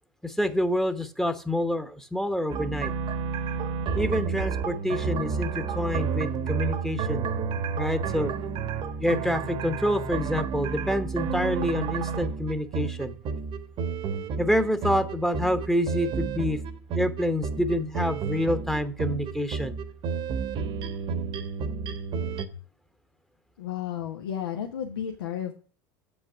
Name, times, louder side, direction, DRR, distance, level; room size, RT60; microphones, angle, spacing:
voice 1, 0.2-2.9 3.9-7.3 7.8-8.3 9.0-13.2 14.4-16.6 16.9-19.8, left 1 dB, 5° left, 9 dB, 1.0 m, -27 dB
sound 1, 2.5-22.5, right 5 dB, 45° right, 1.2 m, -31 dB
voice 2, 23.6-25.5, left 9 dB, 80° left, 2 dB, 1.1 m, -32 dB
8.1 x 5.5 x 6.0 m, 0.38 s
hypercardioid pair, 80°, 12 cm